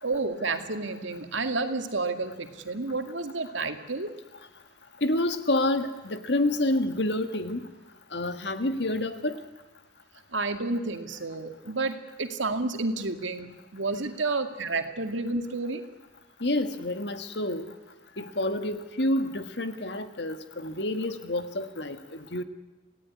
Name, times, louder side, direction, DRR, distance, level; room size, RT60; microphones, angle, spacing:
voice 1, 0.0-4.1 10.3-15.8, right 3 dB, 85° right, 7 dB, 2.3 m, -30 dB
voice 2, 5.0-7.7 8.1-9.4 16.4-17.6 18.2-22.4, left 1 dB, 65° left, 8 dB, 1.9 m, -28 dB
27.5 x 17.5 x 9.8 m, 1.1 s
head